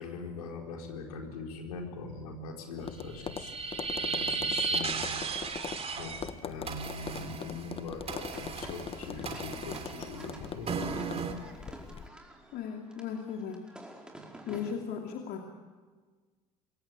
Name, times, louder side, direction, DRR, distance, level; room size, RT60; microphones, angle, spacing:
voice 1, 0.0-3.6 4.1-5.1 5.9-6.1 6.4-10.8, left 3 dB, 70° left, 1 dB, 4.8 m, -41 dB
Tap, 2.8-12.1, left 6 dB, 30° left, 1.4 m, -42 dB
sound 1, 3.0-6.3 6.6-11.3, right 5 dB, 30° right, 3.4 m, -35 dB
sound 2, 8.0-14.7, right 1 dB, 5° right, 5.1 m, -52 dB
voice 2, 12.5-13.6 14.4-15.4, left 7 dB, 50° left, 2 dB, 2.6 m, -36 dB
27.0 x 22.5 x 8.8 m, 1.5 s
figure-of-eight pair, 65°, 20 cm